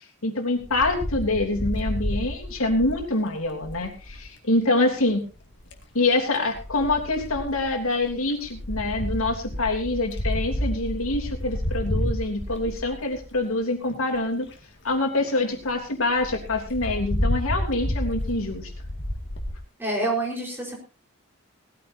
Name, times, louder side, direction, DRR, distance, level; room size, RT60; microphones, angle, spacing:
voice 1, 0.2-5.2 5.9-14.5 14.8-18.7, left 2 dB, 80° left, 1 dB, 3.2 m, -25 dB
Wind, 0.6-4.3 5.4-5.8 6.5-13.5 14.1-14.2 14.5-14.6 14.9-15.0 15.3-15.4 15.6-15.8 16.2-19.5, left 1 dB, 55° left, 2.1 m, -30 dB
voice 2, 19.8-20.8, right 2 dB, 10° right, -2 dB, 4.5 m, -27 dB
19.5 x 14.5 x 2.8 m, 0.34 s
head